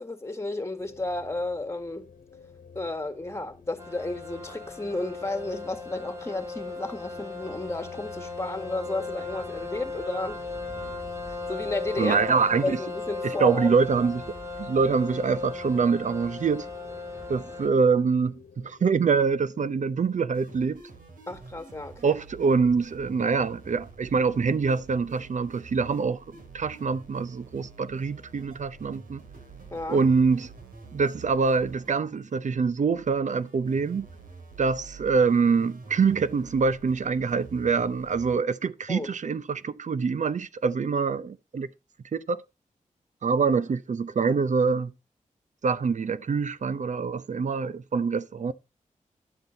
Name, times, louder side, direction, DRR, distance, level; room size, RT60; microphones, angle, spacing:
voice 1, 0.0-2.1 2.7-10.4 11.3-12.2 12.6-13.7 21.3-22.2 29.7-30.0 38.9-39.1, left 2 dB, 20° left, 1.8 m, -32 dB
sound 1, 0.8-20.7, left 6 dB, 80° left, 1.2 m, -52 dB
sound 2, 3.8-17.7, left 3 dB, 20° right, 2.4 m, -37 dB
voice 2, 12.0-12.8 13.2-14.2 14.6-16.7 17.3-20.8 22.0-26.2 26.5-29.2 29.9-30.5 30.9-34.1 34.6-41.7 42.1-42.4 43.2-44.9 45.6-48.5, right 5 dB, 60° right, 0.7 m, -25 dB
sound 3, 20.3-38.3, right 4 dB, 80° right, 3.3 m, -47 dB
11.0 x 7.3 x 4.0 m
cardioid pair, 60°, 14 cm